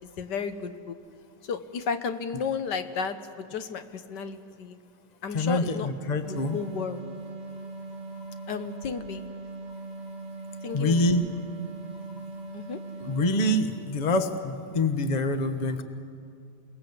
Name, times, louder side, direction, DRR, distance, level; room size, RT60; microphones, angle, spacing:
voice 1, 0.2-1.0 1.4-4.8 5.2-5.9 6.5-7.0 8.5-9.2 10.6-11.0 12.5-12.8, left 6 dB, 75° left, 9 dB, 1.6 m, -33 dB
voice 2, 5.3-6.6 8.2-8.4 10.7-11.2 12.4-12.6 13.0-15.8, left 1 dB, 25° left, 9 dB, 1.1 m, -26 dB
sound 1, 6.2-14.4, right 3 dB, 30° right, 0.8 m, -40 dB
29.0 x 19.0 x 8.0 m, 2.3 s
omnidirectional pair, 1.9 m